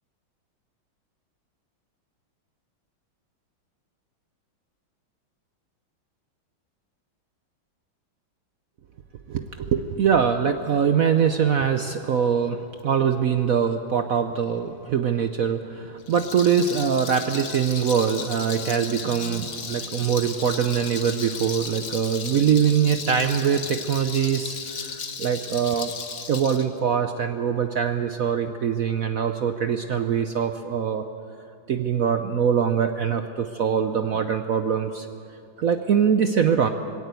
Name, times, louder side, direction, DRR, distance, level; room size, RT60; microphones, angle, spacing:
voice 1, 9.3-25.9 26.3-31.0 31.7-35.1 35.6-36.7, right 7 dB, 65° right, 8 dB, 0.8 m, -23 dB
Rattle, 16.0-26.6, left 5 dB, 45° left, 1.5 m, -35 dB
20.0 x 17.0 x 8.2 m, 2.5 s
omnidirectional pair, 2.3 m